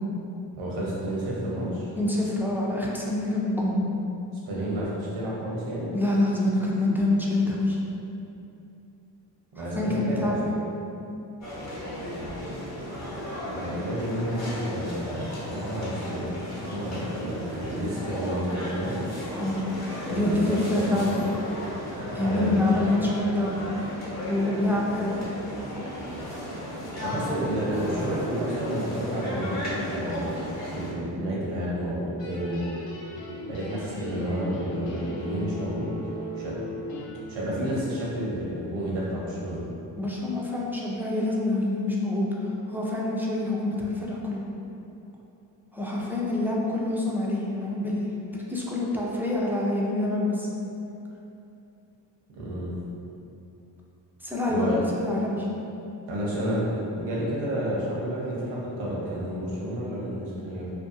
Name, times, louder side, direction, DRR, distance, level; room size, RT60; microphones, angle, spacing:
voice 1, 0.5-1.9 4.5-5.9 9.6-10.3 13.5-16.4 16.7-19.0 20.1-21.1 22.0-23.0 27.0-32.7 33.5-35.9 36.4-36.6 37.3-39.6 52.3-52.7 54.5-54.8 56.1-60.7, equal, 85° right, -6 dB, 0.8 m, -30 dB
voice 2, 2.0-3.7 5.9-7.8 9.6-10.6 19.3-19.6 20.1-21.2 22.2-23.5 24.3-25.1 40.0-44.4 45.7-50.5 54.2-55.5, left 2 dB, 5° right, -5 dB, 0.3 m, -26 dB
sound 1, 11.4-30.9, equal, 35° left, 0.9 m, -35 dB
sound 2, 32.2-37.8, left 1 dB, 70° left, 0.6 m, -37 dB
2.6 x 2.2 x 2.4 m, 2.8 s
supercardioid pair, 55°, 47 cm